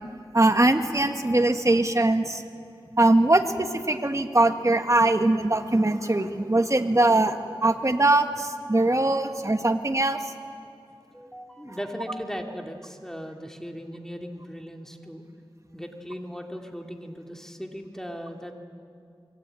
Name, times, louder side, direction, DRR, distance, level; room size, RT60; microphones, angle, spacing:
voice 1, 0.3-2.4 3.0-7.4 7.6-10.2, right 2 dB, 30° right, 6 dB, 1.8 m, -21 dB
voice 2, 11.1-15.2 15.7-18.5, equal, 5° left, 2 dB, 2.8 m, -38 dB
26.0 x 22.5 x 9.2 m, 2.4 s
wide cardioid pair, 50°, 10 cm